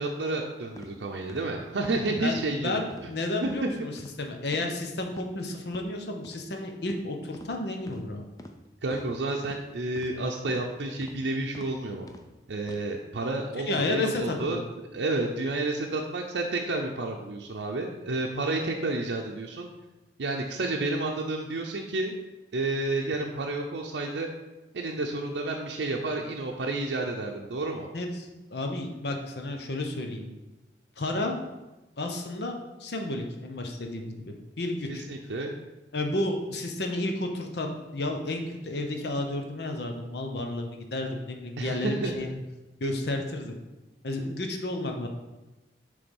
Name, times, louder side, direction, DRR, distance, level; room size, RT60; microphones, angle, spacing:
voice 1, 0.0-2.8 3.4-3.7 8.8-12.1 12.5-14.6 14.9-19.7 20.2-22.1 22.5-24.3 24.7-27.9 34.9-35.6 41.6-42.1, right 2 dB, 80° right, 1 dB, 0.6 m, -30 dB
sound 1, 0.8-0.9 1.3-1.5 1.8-2.0 2.4-2.5 2.9-3.1 3.4-3.6 4.0-4.2 4.5-4.7 5.1-5.3 5.7-5.9 6.2-6.4 6.9-7.0 7.3-7.5 7.9-8.0 8.4-8.6 8.9-9.1 9.4-9.6 10.0-10.1 10.5-10.7 11.0-11.2 11.5-11.7 12.1-12.3 12.6-12.8, left 1 dB, 20° left, 0.4 m, -45 dB
voice 2, 2.2-3.9 4.2-8.2 13.7-14.6 27.9-30.3 31.0-31.4 32.0-35.0 35.9-42.3 42.8-43.6 44.0-45.1, left 2 dB, 70° left, 3 dB, 0.9 m, -32 dB
6.9 x 3.4 x 5.3 m, 1.1 s
head